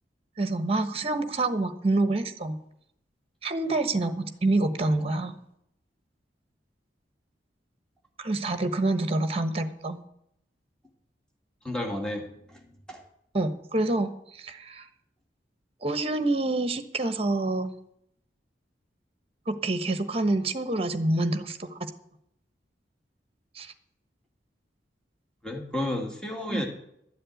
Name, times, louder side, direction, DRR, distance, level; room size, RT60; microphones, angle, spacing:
voice 1, 0.4-2.6 3.4-5.4 8.2-10.0 13.3-14.8 15.8-17.7 19.5-21.8 23.5-23.7 26.5-26.6, right 2 dB, 35° right, 9 dB, 1.1 m, -27 dB
voice 2, 11.6-12.6 12.9-13.0 25.4-26.6, left 1 dB, 5° left, 1 dB, 2.1 m, -32 dB
12.5 x 7.7 x 9.2 m, 0.76 s
head